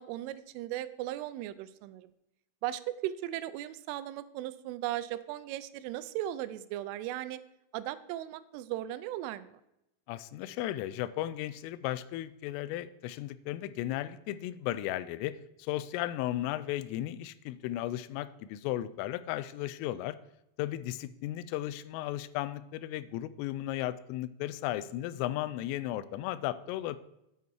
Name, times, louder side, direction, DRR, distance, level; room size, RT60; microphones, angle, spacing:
voice 1, 0.0-2.1 2.6-7.4 7.7-9.6, right 13 dB, 85° right, 15 dB, 3.0 m, -37 dB
voice 2, 10.1-20.2 20.6-27.0, left 14 dB, 90° left, 16 dB, 3.2 m, -35 dB
9.2 x 8.2 x 4.6 m, 0.86 s
omnidirectional pair, 5.7 m